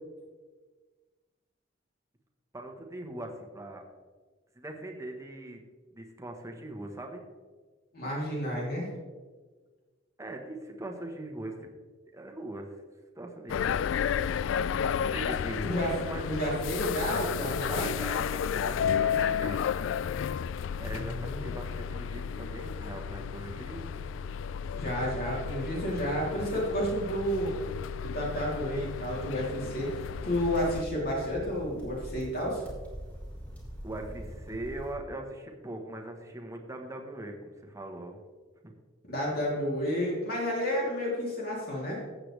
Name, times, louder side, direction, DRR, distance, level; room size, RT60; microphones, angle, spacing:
voice 1, 2.5-3.8 4.5-5.6 5.9-7.2 10.2-11.7 12.1-12.7 13.2-13.8 15.1-16.6 17.7-19.6 20.2-20.5 20.8-24.2 33.8-38.2 38.6-38.7, right 1 dB, 15° right, 2 dB, 1.3 m, -41 dB
voice 2, 7.9-8.9 15.6-15.9 16.3-17.9 20.9-21.5 24.7-27.5 28.0-32.6 39.1-42.0, equal, 55° left, -4 dB, 3.2 m, -31 dB
sound 1, 13.5-30.8, left 7 dB, 85° left, 0.3 m, -32 dB
sound 2, 29.8-34.9, equal, 5° left, 3.2 m, -43 dB
14.5 x 7.9 x 3.4 m, 1.4 s
head